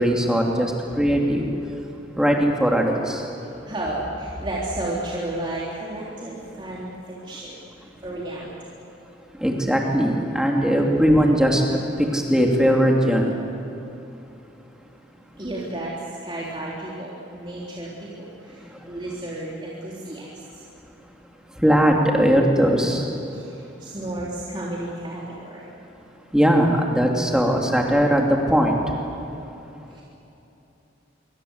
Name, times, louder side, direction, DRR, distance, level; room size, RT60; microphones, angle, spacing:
voice 1, 0.0-1.5 2.2-3.2 9.4-11.6 12.0-13.3 18.6-18.7 21.6-23.0 26.3-28.7, equal, 5° right, 0 dB, 2.9 m, -19 dB
voice 2, 3.6-7.6 8.0-8.5 15.4-20.3 20.5-20.6 23.3-25.7 29.9-30.0, right 1 dB, 25° right, -6 dB, 3.5 m, -32 dB
26.5 x 24.0 x 8.2 m, 2.9 s
head